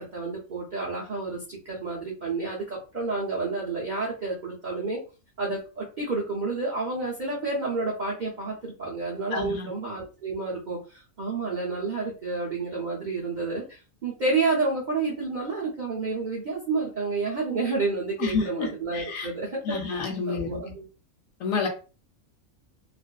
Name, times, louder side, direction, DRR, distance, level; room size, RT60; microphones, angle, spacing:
voice 1, 0.0-5.0 5.4-20.8, right 3 dB, 60° right, -4 dB, 0.4 m, -30 dB
voice 2, 9.3-9.7 18.2-18.7 18.9-19.3 19.7-20.6 21.4-21.7, left 5 dB, 70° left, 3 dB, 1.0 m, -29 dB
2.4 x 2.4 x 2.2 m, 0.34 s
omnidirectional pair, 1.6 m